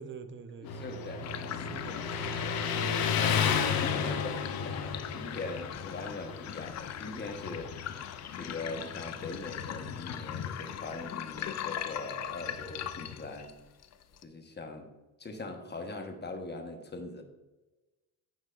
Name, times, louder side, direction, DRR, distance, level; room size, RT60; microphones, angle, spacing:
voice 1, 0.0-2.6, right 5 dB, 30° right, 10 dB, 0.7 m, -47 dB
Motorcycle, 0.6-13.3, left 7 dB, 65° left, 0.9 m, -34 dB
voice 2, 0.6-1.6 2.4-2.6 3.2-3.5 3.8-7.7 8.3-13.5 14.2-14.9 15.2-17.2, left 3 dB, 25° left, 5 dB, 1.2 m, -41 dB
sound 1, 1.2-14.2, left 10 dB, 45° left, 0.5 m, -41 dB
9.6 x 6.3 x 2.5 m, 1.1 s
cardioid pair, 105°, 38 cm